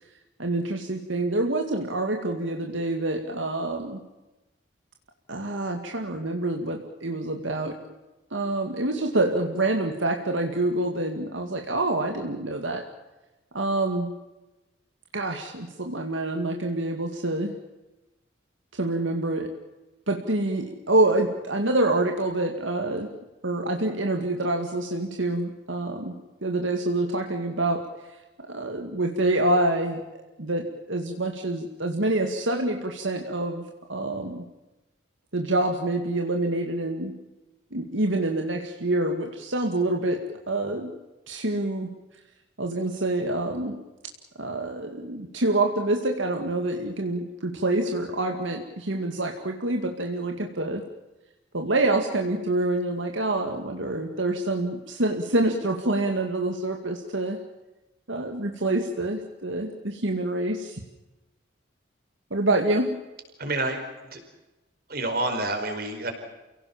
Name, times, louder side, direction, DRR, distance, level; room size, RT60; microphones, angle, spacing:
voice 1, 0.4-4.0 5.3-7.8 8.3-12.9 13.5-14.2 15.1-17.5 18.7-19.5 20.1-23.1 23.4-28.2 28.5-30.0 30.4-34.4 35.3-37.2 37.7-40.9 41.3-41.9 42.6-43.8 44.4-50.8 51.5-57.4 58.1-60.8 62.3-63.0, right 2 dB, 80° right, 3 dB, 2.2 m, -26 dB
voice 2, 63.4-63.8 64.1-64.2 64.9-66.1, right 2 dB, 50° right, 6 dB, 5.0 m, -28 dB
29.0 x 17.5 x 7.3 m, 1.1 s
head